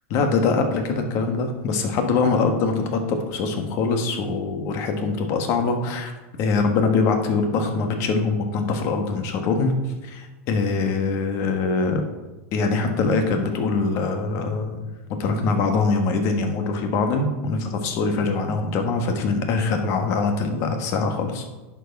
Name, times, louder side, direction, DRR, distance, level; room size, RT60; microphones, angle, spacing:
voice 1, 0.1-6.1 6.4-9.8 10.0-12.0 12.5-14.9 15.2-21.4, left 4 dB, 40° left, 5 dB, 1.3 m, -23 dB
10.5 x 4.6 x 4.5 m, 1.2 s
supercardioid pair, 150°, 7 cm